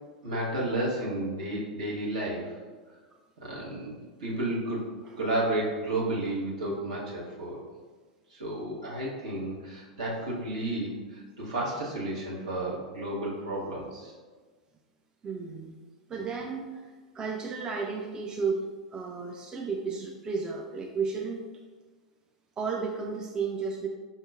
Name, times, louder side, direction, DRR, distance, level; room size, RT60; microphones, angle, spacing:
voice 1, 0.2-2.5 3.4-4.9 5.2-7.6 8.3-14.1, right 1 dB, 65° right, -5 dB, 1.2 m, -32 dB
voice 2, 15.2-15.8 16.1-16.7 17.1-18.6 18.9-21.5 22.6-23.9, right 5 dB, 20° right, 1 dB, 0.3 m, -33 dB
5.4 x 2.8 x 2.3 m, 1.4 s
figure-of-eight pair, 90°, 4 cm